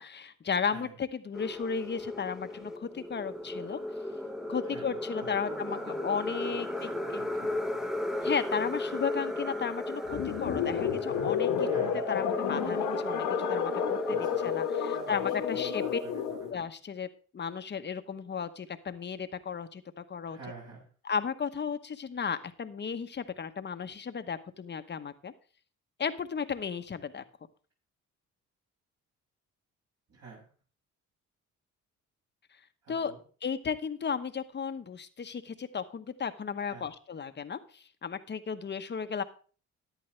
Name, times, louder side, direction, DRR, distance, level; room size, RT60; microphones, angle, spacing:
voice 1, 0.0-3.8 4.5-7.2 8.2-11.7 12.1-14.2 14.4-16.0 16.5-17.1 17.3-20.4 21.0-25.3 26.0-27.2 32.9-33.1 33.4-39.2, left 6 dB, 35° left, 10 dB, 1.0 m, -34 dB
sound 1, 1.3-16.5, left 1 dB, ahead, 0.9 m, -35 dB
voice 2, 4.7-5.0 5.4-7.9 11.6-12.0 14.1-14.5 14.9-16.5 20.2-20.9 30.1-30.5 32.8-33.2 36.7-36.9, right 4 dB, 60° right, -3 dB, 6.2 m, -48 dB
sound 2, 10.1-16.5, left 9 dB, 85° left, 1.5 m, -31 dB
14.0 x 10.5 x 3.2 m, 0.40 s
cardioid pair, 90°, 30 cm